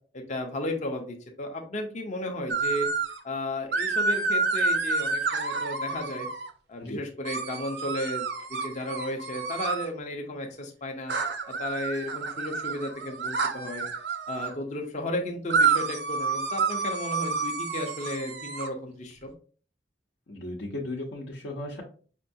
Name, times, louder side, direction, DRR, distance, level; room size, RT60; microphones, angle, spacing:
voice 1, 0.1-2.9 3.2-6.3 6.7-8.3 8.6-11.1 11.5-13.8 14.3-19.3, left 1 dB, 45° left, 2 dB, 0.6 m, -34 dB
sound 1, 2.5-3.2 3.7-6.5 7.2-9.9 11.1-14.5 15.5-18.7, right 4 dB, 65° right, 0.5 m, -29 dB
voice 2, 20.3-21.8, left 1 dB, 75° left, -3 dB, 0.8 m, -35 dB
5.2 x 2.3 x 2.6 m, 0.41 s
head